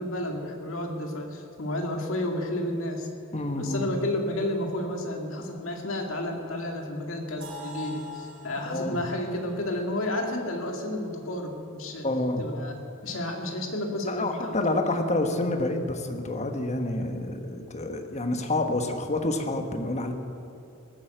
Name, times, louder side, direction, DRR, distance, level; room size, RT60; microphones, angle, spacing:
voice 1, 0.0-3.1 3.6-12.1 12.4-12.8 13.0-15.0, left 1 dB, 65° left, 2 dB, 2.2 m, -31 dB
voice 2, 3.3-3.9 8.7-9.0 12.0-12.5 14.0-20.1, left 2 dB, 30° left, 5 dB, 1.3 m, -28 dB
sound 1, 7.4-11.3, left 3 dB, 60° right, 3.3 m, -45 dB
19.5 x 9.2 x 8.0 m, 2.6 s
head